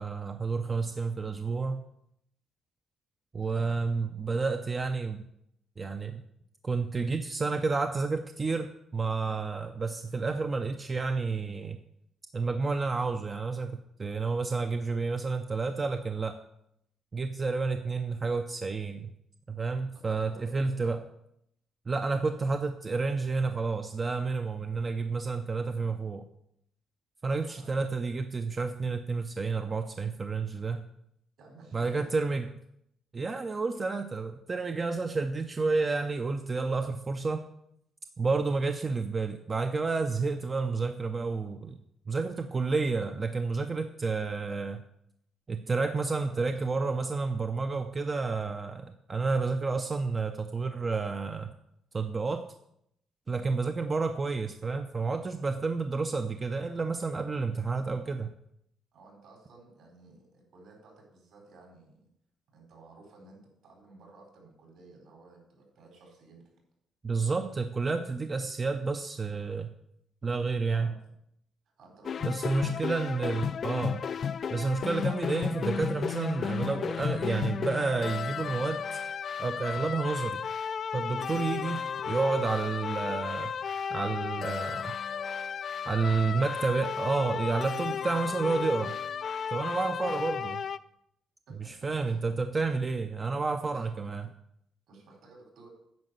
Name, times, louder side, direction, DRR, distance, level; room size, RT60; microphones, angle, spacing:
voice 1, 0.0-1.8 3.3-5.3 5.8-6.2 6.6-11.8 12.3-16.4 17.1-19.1 19.5-21.0 21.9-26.3 27.2-30.8 31.7-32.5 33.1-37.5 38.2-41.8 42.1-44.8 45.5-51.5 51.9-52.5 53.3-58.3 67.0-69.7 70.2-70.9 72.2-74.0 74.5-79.0 79.4-80.4 80.9-83.5 83.9-84.9 85.9-89.0 89.5-90.6 91.6-94.3, right 4 dB, 25° right, 7 dB, 0.5 m, -30 dB
voice 2, 3.4-3.8 19.9-20.9 22.3-22.6 27.4-27.8 31.4-32.4 35.0-35.1 46.1-46.6 53.3-53.5 58.9-62.1 62.5-66.5 70.7-71.0 71.8-73.5 85.9-86.8 89.6-90.2 91.5-92.2 93.6-93.9 94.9-95.7, right 3 dB, 70° right, 0 dB, 4.5 m, -54 dB
sound 1, 72.0-90.8, left 7 dB, 45° left, 0.3 m, -33 dB
9.5 x 5.3 x 7.8 m, 0.75 s
cardioid pair, 135°, 0 cm